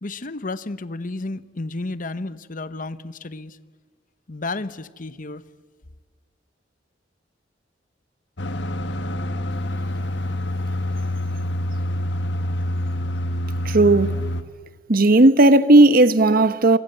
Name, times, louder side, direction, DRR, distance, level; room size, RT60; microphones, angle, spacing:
voice 1, 0.0-3.6 4.3-5.4, left 2 dB, 45° left, 1.0 m, -32 dB
sound 1, 8.4-14.4, left 1 dB, 75° left, 1.5 m, -26 dB
voice 2, 13.7-14.2 14.9-16.8, right 2 dB, 50° right, 1.0 m, -14 dB
26.0 x 26.0 x 8.0 m
head